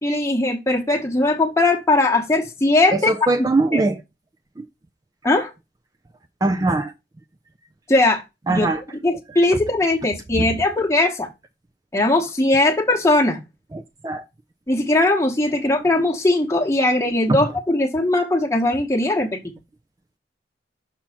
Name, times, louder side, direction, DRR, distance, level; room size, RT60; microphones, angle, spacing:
voice 1, 0.0-3.1 3.7-3.8 5.2-5.5 7.9-8.2 8.5-8.7 9.0-11.3 11.9-13.4 14.7-19.4, left 2 dB, 15° left, 1.0 m, -19 dB
voice 2, 2.9-4.0 4.6-4.7 6.4-6.9 8.5-8.8 10.4-10.5 13.7-14.2, right 2 dB, 20° right, 0.4 m, -21 dB
6.1 x 2.9 x 5.7 m
head